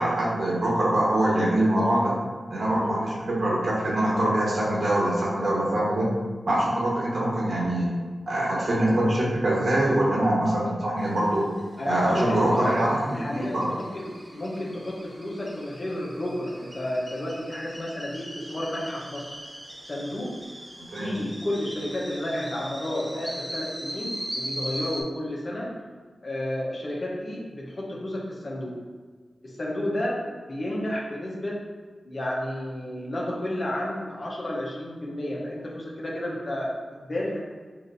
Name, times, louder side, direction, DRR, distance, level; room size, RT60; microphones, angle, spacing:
voice 1, 0.0-2.1 2.5-6.1 6.5-7.9 8.3-11.4 11.9-13.7 20.9-21.1, right 1 dB, 70° right, -5 dB, 1.3 m, -24 dB
sound 1, 11.0-25.0, equal, 20° right, 0.6 m, -40 dB
voice 2, 11.8-19.4 19.9-20.4 21.0-25.7 26.2-28.8 29.4-31.6 32.0-37.4, left 1 dB, 50° left, -4 dB, 1.0 m, -31 dB
5.9 x 2.6 x 2.7 m, 1.4 s
cardioid pair, 65°, 0 cm